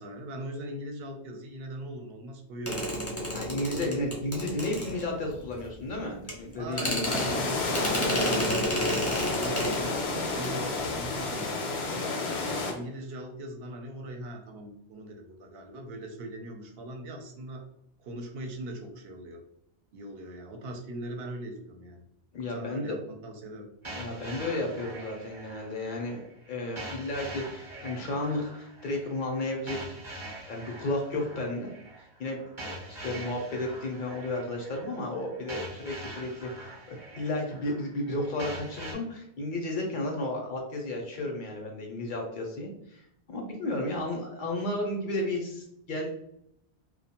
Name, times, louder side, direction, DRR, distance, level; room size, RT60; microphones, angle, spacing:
voice 1, 0.0-2.9 3.8-4.2 6.6-9.1 9.4-10.0 10.3-12.1 12.7-17.6 18.0-19.4 19.9-22.0 22.5-23.7, right 1 dB, 70° right, 4 dB, 0.7 m, -40 dB
sound 1, 2.7-5.4 6.3-6.4 6.7-10.0 10.3-10.5 10.7-11.0, equal, 20° left, 0.5 m, -31 dB
voice 2, 3.3-7.0 22.3-22.9 23.9-26.2 26.5-30.0 30.5-31.7 32.0-43.0 43.3-46.1, left 1 dB, 60° left, 1 dB, 0.6 m, -33 dB
sound 2, 7.0-12.7, left 3 dB, 80° left, 0.9 m, -30 dB
sound 3, 23.8-38.9, right 1 dB, 25° right, 0.5 m, -44 dB
2.4 x 2.1 x 2.8 m, 0.76 s
omnidirectional pair, 1.1 m